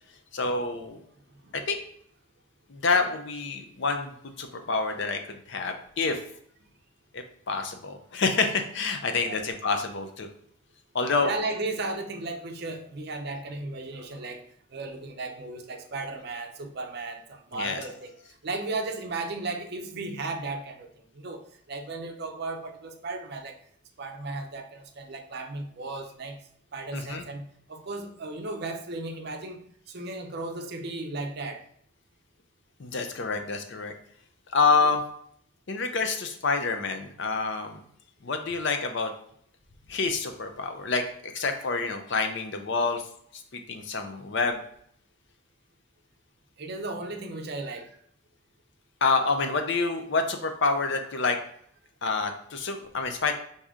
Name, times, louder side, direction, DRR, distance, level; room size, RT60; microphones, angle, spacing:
voice 1, 0.3-1.0 1.7-1.8 2.7-6.2 7.5-10.3 10.9-11.3 17.5-17.8 26.9-27.2 32.8-33.9 34.5-35.0 35.7-37.8 38.2-39.1 39.9-41.0 41.3-43.0 43.7-44.6 49.0-51.4 52.0-53.3, left 4 dB, 55° left, 6 dB, 0.5 m, -27 dB
voice 2, 1.3-1.6 9.2-9.5 11.2-14.4 14.7-23.6 24.0-26.4 26.7-31.6 46.6-48.0, right 3 dB, 50° right, 5 dB, 0.5 m, -35 dB
4.7 x 2.7 x 3.6 m, 0.65 s
head